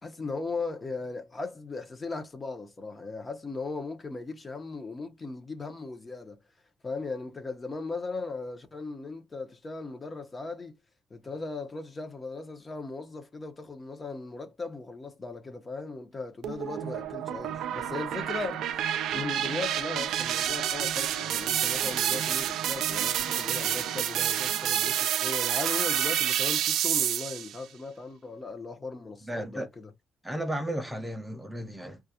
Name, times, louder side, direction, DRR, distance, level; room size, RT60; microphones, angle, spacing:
voice 1, 0.0-6.4 6.8-10.8 11.1-29.9, left 3 dB, 30° left, 0.7 m, -38 dB
sound 1, 16.4-27.6, right 10 dB, 80° right, 0.3 m, -29 dB
voice 2, 29.3-29.7 30.2-32.0, right 1 dB, 5° right, 0.5 m, -34 dB
2.4 x 2.3 x 2.7 m
cardioid pair, 90°, 0 cm